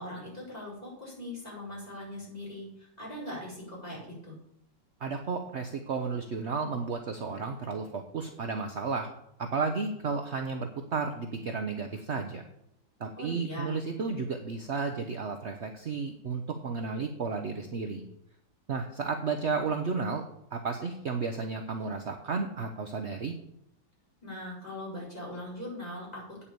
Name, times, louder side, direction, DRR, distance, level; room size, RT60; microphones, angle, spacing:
voice 1, 0.0-4.3 13.2-13.8 24.2-26.4, left 1 dB, 20° left, -6 dB, 4.5 m, -40 dB
voice 2, 5.0-9.1 9.4-12.4 13.0-18.1 18.7-20.2 20.5-23.3, right 4 dB, 60° right, 5 dB, 0.7 m, -33 dB
8.7 x 7.2 x 6.8 m, 0.78 s
omnidirectional pair, 2.2 m